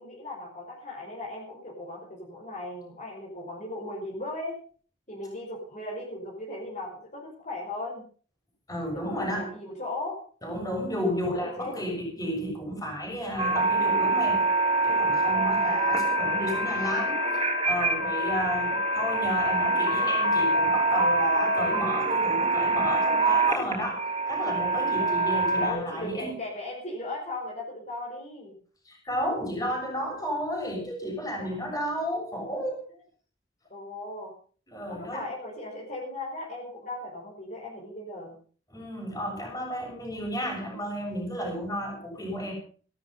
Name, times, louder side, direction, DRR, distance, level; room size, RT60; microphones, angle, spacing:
voice 1, 0.0-4.6 5.1-8.0 8.9-10.2 10.9-11.7 15.1-15.5 25.5-28.6 31.4-31.7 33.7-34.3 34.9-38.4, left 1 dB, 45° left, -2 dB, 5.3 m, -37 dB
voice 2, 8.7-9.5 10.4-14.4 14.8-24.0 24.3-26.4 28.8-32.8 34.7-35.2 38.7-42.5, equal, 20° left, 0 dB, 6.8 m, -32 dB
sound 1, 13.4-25.7, right 2 dB, 35° right, 3.3 m, -25 dB
16.0 x 12.5 x 5.5 m, 0.43 s
head